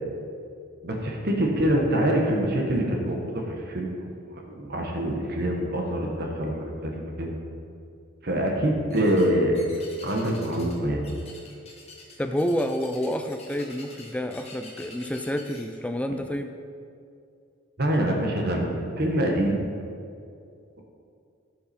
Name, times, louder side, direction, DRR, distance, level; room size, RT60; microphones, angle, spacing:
voice 1, 0.8-4.1 4.5-7.4 8.2-9.6 10.0-11.0 17.8-19.6, right 1 dB, 50° right, 1 dB, 1.1 m, -25 dB
sound 1, 8.9-9.3 9.5-10.8 11.0-15.6, left 3 dB, 30° left, 1.3 m, -47 dB
voice 2, 12.2-16.5, equal, 5° left, 6 dB, 0.3 m, -29 dB
12.0 x 5.9 x 4.3 m, 2.4 s
head